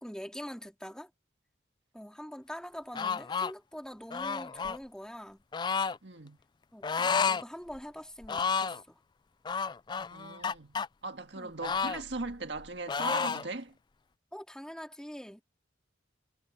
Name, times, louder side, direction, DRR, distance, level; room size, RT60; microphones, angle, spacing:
voice 1, 0.0-1.1 1.9-5.4 6.7-9.0 11.3-11.5 14.3-15.4, equal, 5° left, 2.5 m, -44 dB
sound 1, 2.9-3.5 4.1-4.8 5.5-6.0 6.8-7.4 7.7-7.8 8.2-8.8 9.5-10.9 11.6-12.6 12.9-13.5, left 5 dB, 25° left, 0.3 m, -31 dB
voice 2, 6.0-6.4 10.1-10.8 11.0-13.7, right 3 dB, 65° right, 1.9 m, -39 dB
head